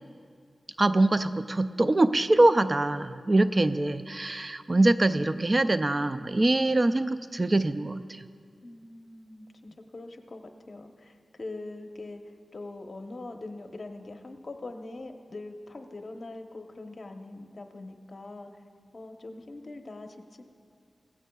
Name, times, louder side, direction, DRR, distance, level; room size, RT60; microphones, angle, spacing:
voice 1, 0.8-8.2, right 2 dB, 35° right, 12 dB, 0.4 m, -24 dB
voice 2, 8.6-18.6 18.9-20.4, left 2 dB, 50° left, 5 dB, 0.9 m, -42 dB
18.5 x 15.5 x 2.3 m, 2.2 s
cardioid pair, 65°, 0 cm